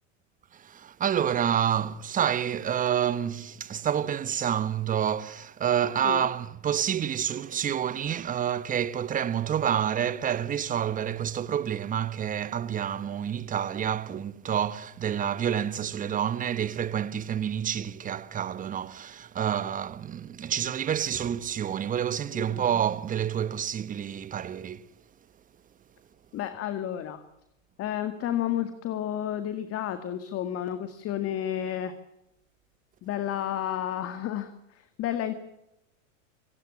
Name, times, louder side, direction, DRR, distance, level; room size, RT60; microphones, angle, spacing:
voice 1, 0.5-24.9, right 9 dB, 20° right, 1.1 m, -28 dB
voice 2, 22.3-22.6 26.3-27.2 27.8-31.9 33.0-35.3, left 11 dB, 35° left, 2.0 m, -31 dB
27.0 x 17.0 x 8.5 m
hypercardioid pair, 120°, 39 cm